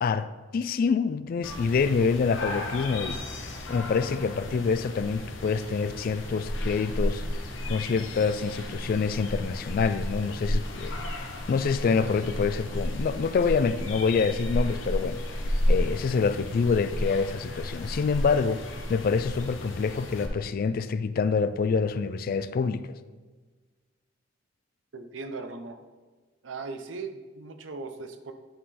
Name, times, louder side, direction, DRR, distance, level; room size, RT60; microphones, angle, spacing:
voice 1, 0.0-7.2 7.7-22.9, left 5 dB, 50° left, 0.3 m, -27 dB
sound 1, 1.4-20.3, left 1 dB, 85° left, 0.9 m, -33 dB
voice 2, 24.9-25.8 26.4-28.3, right 3 dB, 80° right, 0.6 m, -38 dB
10.0 x 3.8 x 4.2 m
head